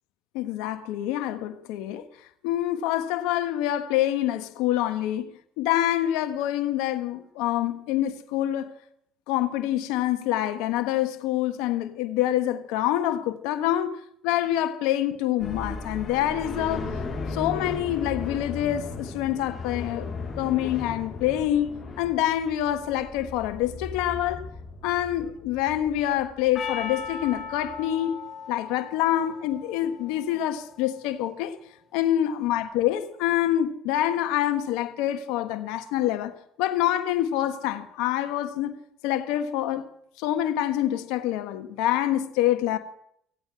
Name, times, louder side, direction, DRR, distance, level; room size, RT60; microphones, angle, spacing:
voice 1, 0.3-2.1 2.4-8.7 9.3-13.9 14.2-17.0 17.3-20.1 20.4-24.4 24.8-28.1 28.5-31.5 31.9-38.8 39.0-39.9 40.2-42.8, left 12 dB, 80° left, 1.5 m, -26 dB
sound 1, 15.4-27.9, left 3 dB, 35° left, 6.2 m, -37 dB
Percussion, 26.5-31.0, left 5 dB, 50° left, 5.4 m, -38 dB
16.5 x 9.0 x 8.7 m
supercardioid pair, 75°, 0 cm